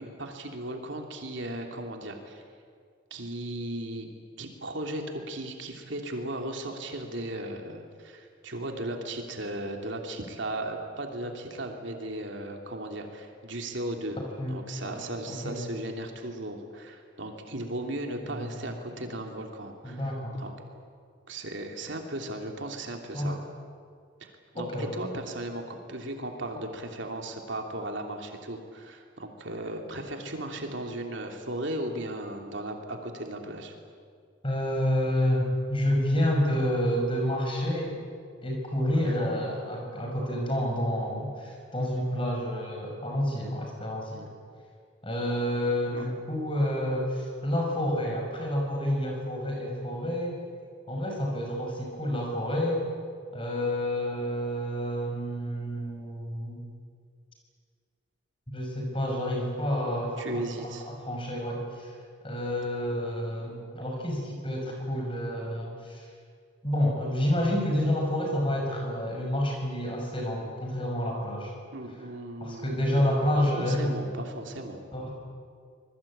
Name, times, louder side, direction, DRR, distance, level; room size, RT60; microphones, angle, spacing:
voice 1, 0.0-2.4 3.1-14.2 14.4-20.5 21.3-23.4 24.2-33.7 38.9-39.2 45.9-46.1 60.2-60.9 71.7-73.1 73.3-74.8, right 1 dB, 65° right, 3 dB, 3.0 m, -36 dB
voice 2, 14.4-14.9 15.3-15.6 18.2-18.6 19.8-20.3 23.1-23.4 24.5-24.9 34.4-35.4 35.7-38.0 38.4-44.3 45.0-50.4 50.9-52.9 53.3-56.6 58.5-61.9 62.2-66.1 66.6-71.5 72.4-74.0 74.9-75.1, equal, 25° left, 1 dB, 6.0 m, -29 dB
26.0 x 22.0 x 8.8 m, 2.1 s
head